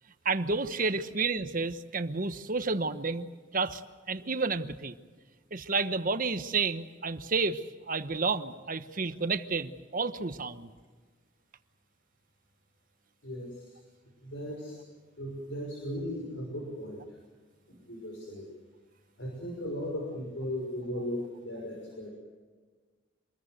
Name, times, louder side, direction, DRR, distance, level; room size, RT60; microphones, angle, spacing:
voice 1, 0.2-3.8 4.1-5.0 5.5-10.7, right 4 dB, 45° right, 10 dB, 1.1 m, -31 dB
voice 2, 13.2-13.7 14.2-14.8 15.2-17.0 17.7-18.5 19.2-22.1, equal, 75° left, -1 dB, 6.1 m, -37 dB
26.5 x 21.5 x 7.8 m, 1.4 s
head